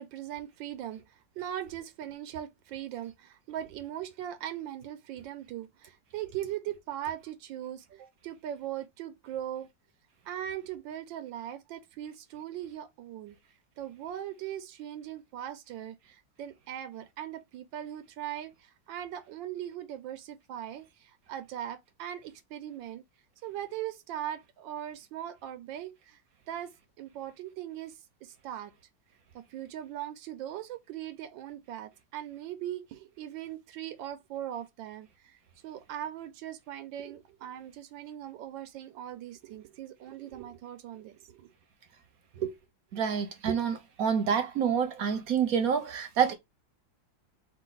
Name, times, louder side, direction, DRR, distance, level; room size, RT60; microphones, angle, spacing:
voice 1, 0.0-9.7 10.2-13.4 13.8-23.0 23.4-26.2 26.5-28.7 29.3-35.4 35.6-41.5, right 11 dB, 85° right, 1.4 m, -40 dB
voice 2, 42.9-46.3, right 7 dB, 60° right, 1.1 m, -28 dB
4.7 x 2.6 x 3.8 m
omnidirectional pair, 2.0 m